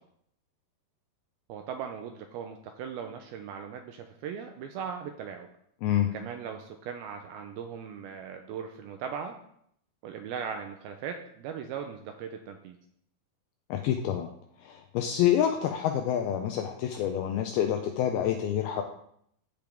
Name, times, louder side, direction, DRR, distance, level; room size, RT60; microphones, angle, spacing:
voice 1, 1.5-5.5 6.1-9.4 10.0-12.8, right 7 dB, 85° right, 5 dB, 2.2 m, -38 dB
voice 2, 5.8-6.1 13.7-14.3 14.6-18.8, left 10 dB, 90° left, 5 dB, 2.2 m, -27 dB
15.5 x 5.2 x 3.5 m, 0.69 s
omnidirectional pair, 4.9 m